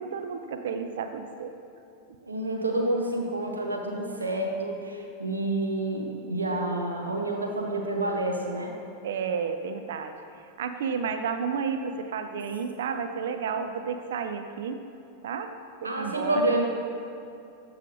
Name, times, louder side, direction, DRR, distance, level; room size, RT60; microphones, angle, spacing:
voice 1, 0.0-1.5 9.0-10.1 10.6-14.8 15.2-15.5 15.8-16.5, right 6 dB, 60° right, 7 dB, 0.4 m, -31 dB
voice 2, 2.2-8.8 15.8-16.7, right 1 dB, 75° right, 1 dB, 0.9 m, -28 dB
14.0 x 4.9 x 2.6 m, 2.6 s
figure-of-eight pair, 90°, 0 cm